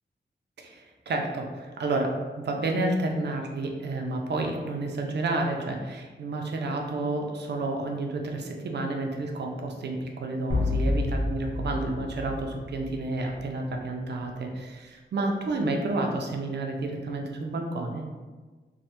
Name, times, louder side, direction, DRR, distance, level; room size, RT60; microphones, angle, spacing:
voice 1, 0.6-18.0, right 2 dB, 65° right, 2 dB, 0.4 m, -30 dB
sound 1, 10.5-13.4, left 2 dB, 20° left, 0.4 m, -29 dB
3.2 x 2.0 x 2.8 m, 1.3 s
wide cardioid pair, 145°, 19 cm